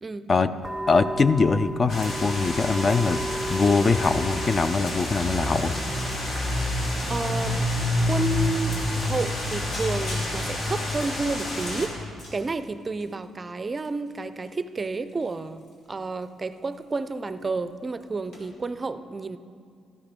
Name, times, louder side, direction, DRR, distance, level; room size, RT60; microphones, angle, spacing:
sound 1, 0.6-11.3, right 1 dB, 10° left, 1.8 m, -37 dB
voice 1, 0.9-3.2 3.5-5.8, left 4 dB, 35° left, 13 dB, 0.4 m, -22 dB
sound 2, 1.9-11.9, left 1 dB, 65° left, 2.5 m, -28 dB
voice 2, 6.8-7.7 8.1-12.0 12.3-15.6 15.9-19.4, right 3 dB, 30° right, 12 dB, 0.4 m, -31 dB
sound 3, 7.7-8.1 8.7-8.8 9.2-9.4 9.7-13.2 13.7-17.1 17.4-17.7 18.0-18.1 18.3-18.4, left 1 dB, 80° left, 2.6 m, -45 dB
13.0 x 10.5 x 3.6 m, 2.2 s
cardioid pair, 90°, 0 cm